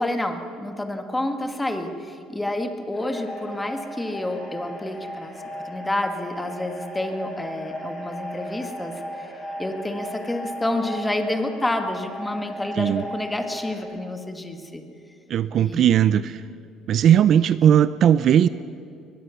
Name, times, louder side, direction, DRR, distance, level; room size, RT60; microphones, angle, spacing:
voice 1, 0.0-5.3 5.6-9.3 9.6-14.8 15.6-16.1, left 1 dB, 10° left, 6 dB, 1.6 m, -29 dB
sound 1, 2.9-13.8, equal, 30° left, 6.9 m, -37 dB
voice 2, 15.3-16.4 16.9-18.5, right 9 dB, 45° right, 15 dB, 0.4 m, -18 dB
22.5 x 21.0 x 7.0 m, 2.5 s
cardioid pair, 160°, 0 cm